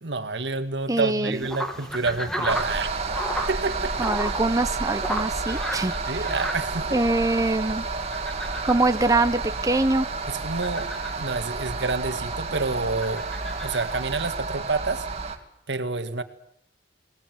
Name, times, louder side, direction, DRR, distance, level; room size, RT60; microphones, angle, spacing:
voice 1, 0.0-2.9 3.5-4.1 6.1-7.0 10.3-10.9 11.2-13.3 13.6-15.1 15.7-16.2, right 3 dB, 80° right, 9 dB, 1.9 m, -28 dB
voice 2, 0.9-1.4 4.0-5.9 6.9-7.8 8.6-10.1, right 2 dB, 20° right, 9 dB, 0.9 m, -23 dB
sound 1, 1.3-14.4, equal, 5° left, 2.5 m, -36 dB
sound 2, 2.5-15.4, right 4 dB, 35° right, 2.4 m, -30 dB
22.0 x 19.5 x 9.4 m, 0.73 s
head